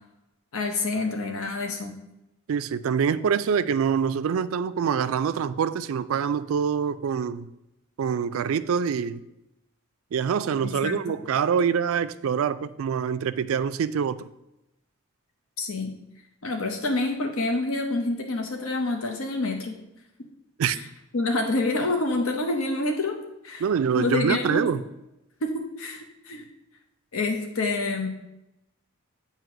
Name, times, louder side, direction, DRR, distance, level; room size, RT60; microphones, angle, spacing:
voice 1, 0.5-2.0 10.6-10.9 15.6-15.9 16.4-19.8 20.8-20.9 21.1-23.2 23.4-23.6 23.9-24.7 25.4-26.5 27.1-28.1, left 2 dB, 70° left, 0.8 m, -27 dB
voice 2, 2.5-7.5 8.0-9.2 10.1-14.3 20.6-20.8 23.6-24.8, right 7 dB, 70° right, 0.3 m, -25 dB
7.6 x 2.9 x 5.9 m
head